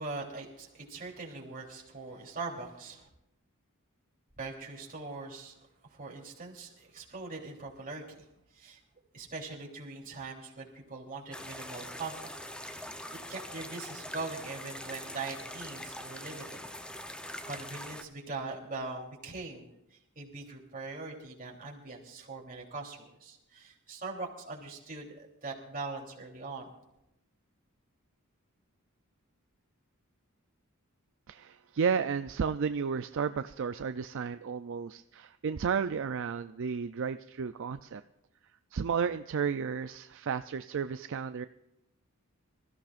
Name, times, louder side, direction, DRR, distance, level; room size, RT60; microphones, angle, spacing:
voice 1, 0.0-3.1 4.4-5.6 5.8-8.3 8.5-8.8 9.1-12.3 12.6-12.9 13.3-16.6 17.4-26.7, right 3 dB, 40° right, -1 dB, 3.3 m, -41 dB
sound 1, 11.3-18.0, left 1 dB, 5° left, 0.7 m, -43 dB
voice 2, 31.3-38.0 38.7-41.5, right 6 dB, 60° right, 11 dB, 0.4 m, -32 dB
26.0 x 14.5 x 2.5 m, 0.86 s
head